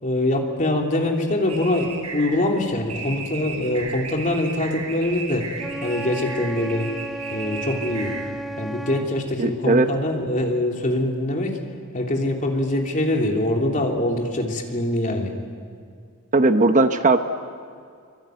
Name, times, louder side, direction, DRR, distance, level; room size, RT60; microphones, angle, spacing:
voice 1, 0.0-5.5 5.8-6.9 7.3-8.2 8.6-11.6 11.9-15.3, left 1 dB, 35° left, 1 dB, 3.2 m, -23 dB
sound 1, 1.5-8.6, right 5 dB, 80° right, 5.9 m, -35 dB
Wind instrument woodwind instrument, 5.6-9.1, right 1 dB, ahead, 1.2 m, -33 dB
voice 2, 9.4-9.9 16.3-17.2, right 2 dB, 35° right, 8 dB, 0.9 m, -17 dB
25.0 x 25.0 x 9.2 m, 2.2 s
head